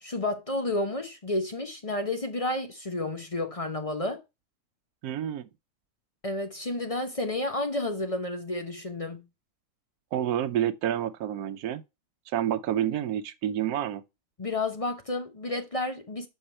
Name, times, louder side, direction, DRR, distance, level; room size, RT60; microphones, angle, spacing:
voice 1, 0.0-4.2 6.2-9.2 14.4-16.3, left 2 dB, 30° left, 0.7 m, -31 dB
voice 2, 5.0-5.5 10.1-11.8 12.3-14.0, right 10 dB, 85° right, 1.2 m, -29 dB
6.8 x 5.5 x 4.3 m
omnidirectional pair, 1.6 m